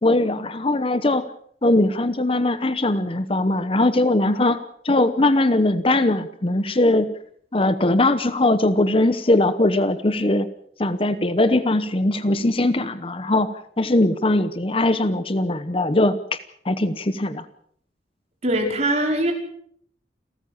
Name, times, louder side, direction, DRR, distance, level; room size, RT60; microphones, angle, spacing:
voice 1, 0.0-1.3 1.6-7.1 7.5-10.5 10.8-16.4 16.6-17.4, left 2 dB, 30° left, 13 dB, 0.9 m, -20 dB
voice 2, 18.4-19.3, right 1 dB, 40° right, 2 dB, 5.0 m, -21 dB
29.0 x 13.5 x 7.1 m, 0.65 s
head